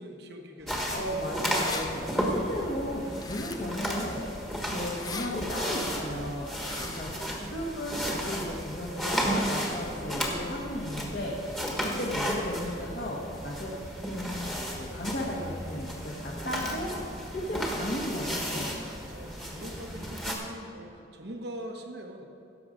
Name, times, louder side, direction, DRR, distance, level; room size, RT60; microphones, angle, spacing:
voice 1, 0.0-1.2 6.8-7.1 19.1-22.2, equal, 55° right, 3 dB, 1.1 m, -42 dB
sound 1, 0.6-20.2, equal, 15° right, 1.2 m, -49 dB
sound 2, 0.7-20.3, equal, ahead, 1.4 m, -34 dB
voice 2, 0.9-4.4 4.7-7.1 7.4-11.5 11.8-13.7 14.1-18.8, left 1 dB, 50° left, -4 dB, 1.4 m, -35 dB
sound 3, 1.6-1.9 3.2-3.8 4.9-5.3 6.5-7.0, left 4 dB, 20° left, 0.6 m, -39 dB
16.5 x 7.0 x 5.1 m, 2.8 s
head